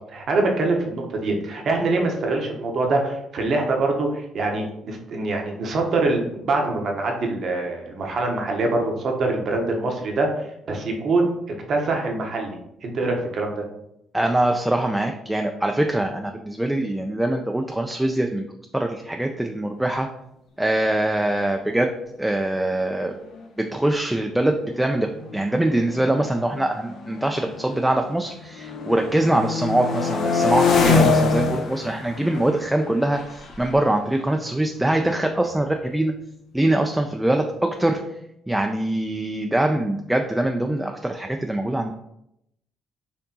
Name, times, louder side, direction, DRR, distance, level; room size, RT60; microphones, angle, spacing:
voice 1, 0.1-10.3 10.7-11.3 11.7-13.6, right 2 dB, 55° right, 2 dB, 0.8 m, -24 dB
voice 2, 14.1-18.5 18.7-20.1 20.6-21.9 22.2-23.1 23.6-25.1 25.3-36.1 36.5-38.0 38.5-41.9, right 1 dB, 10° right, 3 dB, 0.4 m, -23 dB
sound 1, 22.7-22.8 23.1-23.4 24.2-28.1 28.5-35.1, left 4 dB, 65° left, 0.7 m, -26 dB
4.4 x 2.7 x 2.7 m, 0.80 s
supercardioid pair, 60°, 0 cm